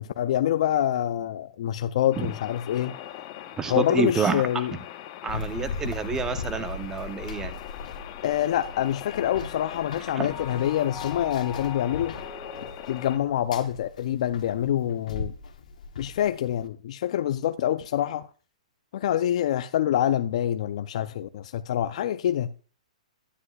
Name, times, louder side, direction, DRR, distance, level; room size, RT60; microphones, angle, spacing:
voice 1, 0.0-3.0 3.7-4.7 8.2-12.2 12.9-15.3 16.0-18.3 18.9-22.5, left 11 dB, 55° left, 0.4 m, -26 dB
sound 1, 2.1-13.2, left 12 dB, 35° left, 0.8 m, -42 dB
voice 2, 3.6-4.4 5.2-7.5 10.1-10.3, right 5 dB, 15° right, 0.6 m, -28 dB
Run, 5.3-16.7, left 4 dB, 75° left, 1.1 m, -38 dB
Mallet percussion, 8.1-14.2, left 7 dB, 15° left, 3.2 m, -44 dB
9.8 x 9.7 x 2.3 m
hypercardioid pair, 150°, 4 cm